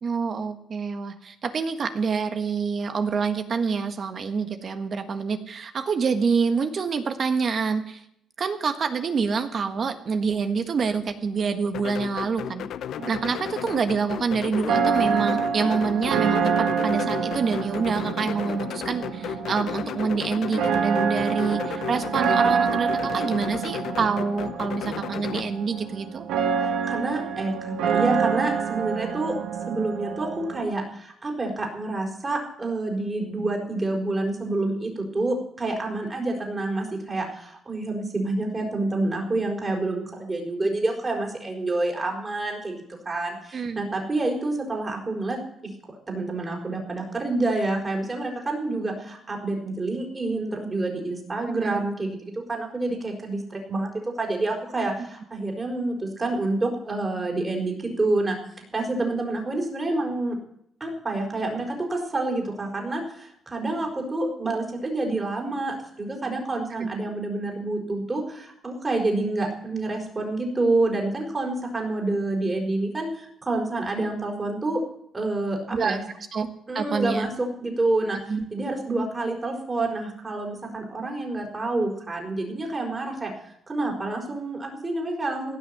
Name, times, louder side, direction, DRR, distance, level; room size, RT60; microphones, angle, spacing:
voice 1, 0.0-8.0 8.4-12.7 13.1-26.3 43.5-43.9 51.5-51.9 66.8-66.9 75.7-76.5 76.7-77.3 78.3-78.4, right 5 dB, 50° right, 8 dB, 1.5 m, -27 dB
sound 1, 11.7-25.5, left 10 dB, 75° left, 0.6 m, -34 dB
sound 2, 13.0-30.6, right 6 dB, 90° right, 1.5 m, -27 dB
voice 2, 26.6-29.4 29.7-45.4 45.6-45.7 46.1-53.9 54.2-58.4 58.7-60.4 60.8-74.8 75.1-76.0 76.7-77.3 77.6-78.2 78.5-83.3 83.7-85.6, right 2 dB, 25° right, 1 dB, 4.4 m, -28 dB
16.5 x 6.4 x 9.4 m, 0.73 s
cardioid pair, 90°, 0 cm